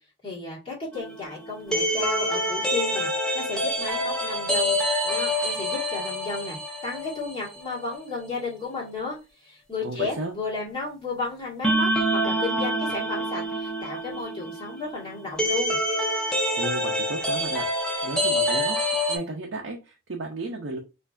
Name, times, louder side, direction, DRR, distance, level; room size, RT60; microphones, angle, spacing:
voice 1, 0.2-4.8 5.0-6.6 6.8-9.2 9.4-15.8, left 4 dB, 30° left, -6 dB, 1.7 m, -33 dB
sound 1, 0.9-7.6 7.9-8.0 11.6-19.2, equal, 5° left, 0.7 m, -26 dB
voice 2, 9.8-10.3 16.6-17.7 18.0-18.8 19.1-20.8, right 2 dB, 70° right, 0 dB, 0.6 m, -33 dB
4.5 x 2.6 x 2.5 m, 0.28 s
head